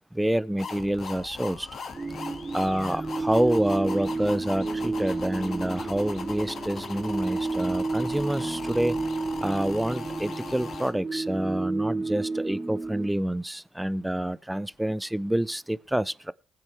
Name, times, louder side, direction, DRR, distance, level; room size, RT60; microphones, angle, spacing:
voice 1, 0.1-1.7 2.5-9.0 9.4-16.3, right 1 dB, 5° right, 0.5 m, -27 dB
sound 1, 0.6-10.9, left 5 dB, 55° left, 2.0 m, -39 dB
sound 2, 1.9-13.1, right 3 dB, 30° right, 2.8 m, -31 dB
21.0 x 7.5 x 3.4 m
supercardioid pair, 65°, 0 cm